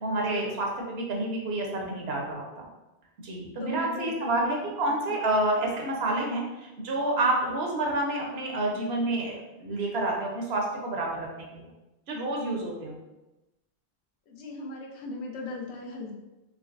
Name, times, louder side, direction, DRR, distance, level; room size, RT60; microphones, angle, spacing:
voice 1, 0.0-2.7 3.2-11.7 12.1-13.0, right 2 dB, 80° right, 0 dB, 1.0 m, -29 dB
voice 2, 3.6-4.4 4.8-5.0 14.3-16.1, left 2 dB, 85° left, 0 dB, 0.9 m, -38 dB
3.8 x 2.9 x 2.5 m, 1.0 s
omnidirectional pair, 1.1 m